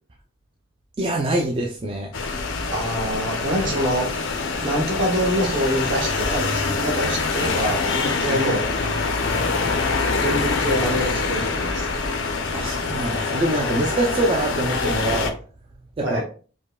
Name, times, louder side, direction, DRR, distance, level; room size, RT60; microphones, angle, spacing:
voice 1, 1.0-2.1 8.2-8.4 12.5-15.4 16.0-16.2, right 1 dB, 25° right, 0.3 m, -24 dB
sound 1, 2.1-15.3, left 4 dB, 75° left, 0.5 m, -25 dB
voice 2, 2.7-4.3 4.6-8.7 10.2-11.9 16.0-16.2, equal, 65° right, 1.2 m, -25 dB
4.9 x 2.1 x 2.2 m
head